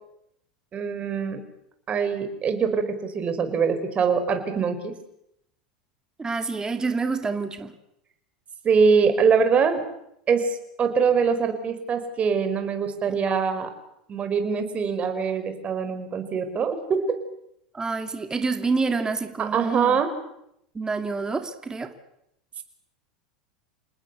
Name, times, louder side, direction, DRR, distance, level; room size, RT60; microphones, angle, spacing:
voice 1, 0.7-1.4 1.9-4.9 8.6-9.8 10.3-13.7 14.1-17.2 19.4-20.1, right 5 dB, 30° right, 8 dB, 5.3 m, -23 dB
voice 2, 6.2-7.7 13.1-13.2 17.7-20.0 20.7-21.9, right 4 dB, 15° right, 7 dB, 2.6 m, -28 dB
28.5 x 19.5 x 8.6 m, 0.77 s
hypercardioid pair, 90°, 4 cm